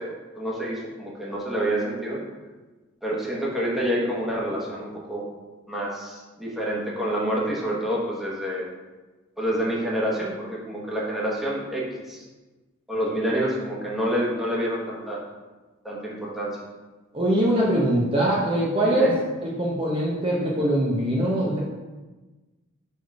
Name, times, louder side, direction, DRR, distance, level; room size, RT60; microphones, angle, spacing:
voice 1, 0.0-2.2 3.0-5.3 5.7-8.7 9.4-12.2 12.9-15.2 15.8-16.6 18.8-19.1, equal, ahead, -5 dB, 1.2 m, -28 dB
voice 2, 17.1-19.1 19.4-21.6, right 1 dB, 25° right, -5 dB, 0.8 m, -22 dB
4.9 x 4.4 x 4.6 m, 1.2 s
head